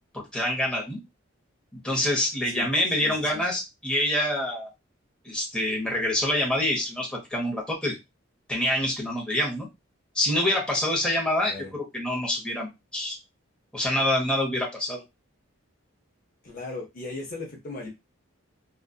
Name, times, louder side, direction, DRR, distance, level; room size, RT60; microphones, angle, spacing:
voice 1, 0.1-1.0 1.8-4.7 5.2-7.9 8.5-9.7 10.1-13.2 13.7-15.0, left 1 dB, 5° left, -3 dB, 0.8 m, -26 dB
voice 2, 3.0-3.4 11.4-11.7 16.4-17.9, left 3 dB, 40° left, 1 dB, 0.6 m, -37 dB
2.6 x 2.4 x 2.3 m, 0.22 s
head